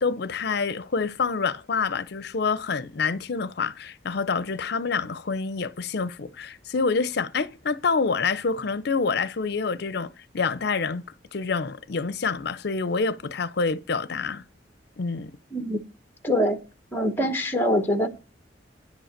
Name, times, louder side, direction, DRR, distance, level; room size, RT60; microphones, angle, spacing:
voice 1, 0.0-11.0 11.3-14.4 15.0-15.3, left 4 dB, 60° left, 0.6 m, -27 dB
voice 2, 15.5-15.8 16.2-16.6 16.9-18.1, equal, 10° left, 0.9 m, -24 dB
10.5 x 5.2 x 6.6 m
head